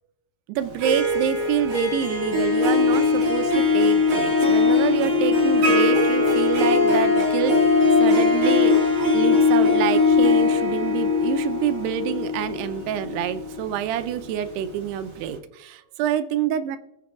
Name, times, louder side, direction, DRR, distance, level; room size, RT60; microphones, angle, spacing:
voice 1, 0.5-7.6 8.0-16.8, right 10 dB, 80° right, 10 dB, 2.6 m, -27 dB
Harp, 0.6-14.6, left 4 dB, 50° right, 1.3 m, -20 dB
21.5 x 7.3 x 2.4 m, 0.88 s
omnidirectional pair, 4.8 m